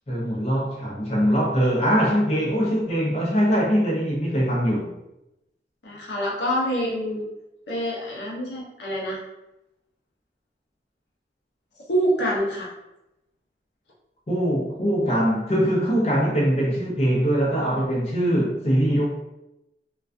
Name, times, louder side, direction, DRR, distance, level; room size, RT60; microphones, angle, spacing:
voice 1, 0.1-5.0 14.3-19.1, equal, 35° left, -5 dB, 0.5 m, -22 dB
voice 2, 5.8-7.3 7.7-9.2 11.9-12.7, equal, 75° left, -3 dB, 0.6 m, -26 dB
2.3 x 2.3 x 2.4 m, 0.92 s
head